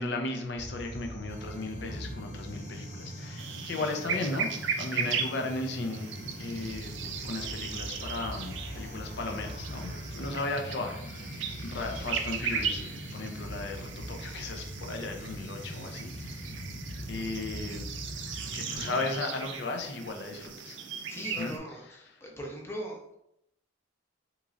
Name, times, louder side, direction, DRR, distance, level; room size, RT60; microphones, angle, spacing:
voice 1, 0.0-4.5 4.8-6.1 6.4-6.9 7.2-16.6 17.1-17.9 18.5-20.8 21.3-22.2, left 2 dB, 60° left, 4 dB, 0.5 m, -36 dB
sound 1, 0.6-19.1, equal, 85° left, 1.5 m, -42 dB
sound 2, 1.3-19.7, left 1 dB, 40° left, 1.0 m, -55 dB
sound 3, 3.4-21.6, right 6 dB, 70° right, 0.4 m, -37 dB
voice 2, 21.1-23.1, equal, 15° left, 0 dB, 0.6 m, -40 dB
3.6 x 3.0 x 2.5 m, 0.78 s
head